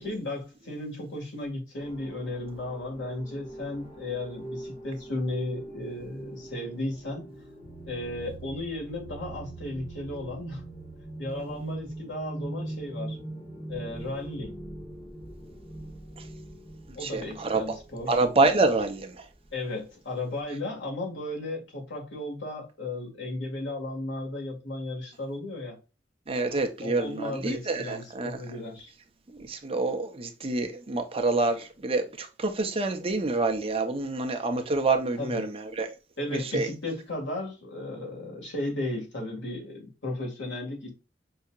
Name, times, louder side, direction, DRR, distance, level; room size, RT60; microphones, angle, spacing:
voice 1, 0.0-7.3 7.9-10.7 11.2-13.2 13.7-14.5 17.0-18.1 19.5-25.8 26.8-28.9 35.2-35.5 36.2-40.9, left 1 dB, 90° left, 2.0 m, -35 dB
sound 1, 1.8-18.9, right 1 dB, 30° left, 1.3 m, -42 dB
voice 2, 17.0-17.6 18.1-19.1 26.3-28.3 29.3-35.6 36.5-36.7, right 3 dB, 30° right, 0.6 m, -27 dB
5.5 x 2.8 x 2.4 m
head